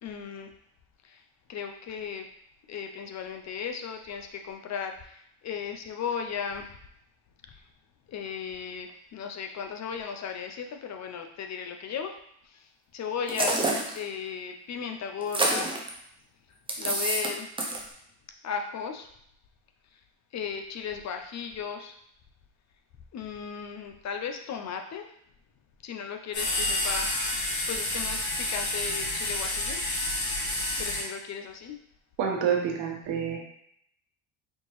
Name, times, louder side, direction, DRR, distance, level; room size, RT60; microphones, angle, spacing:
voice 1, 0.0-0.5 1.0-1.2 1.5-2.3 2.7-6.7 8.1-12.2 12.4-15.7 16.5-17.5 18.4-19.1 20.3-21.9 23.1-25.1 25.8-27.4 27.7-29.8 30.8-31.8, left 7 dB, 40° left, 5 dB, 0.4 m, -36 dB
sound 1, 13.3-14.0 15.2-15.9 16.7-17.3 17.6-17.8, right 2 dB, 10° right, 0.5 m, -27 dB
sound 2, 26.3-31.0, left 1 dB, 85° left, 1.6 m, -29 dB
voice 2, 32.2-33.4, right 7 dB, 85° right, 0 dB, 1.1 m, -27 dB
4.4 x 2.9 x 3.0 m, 0.71 s
cardioid pair, 120°, 45 cm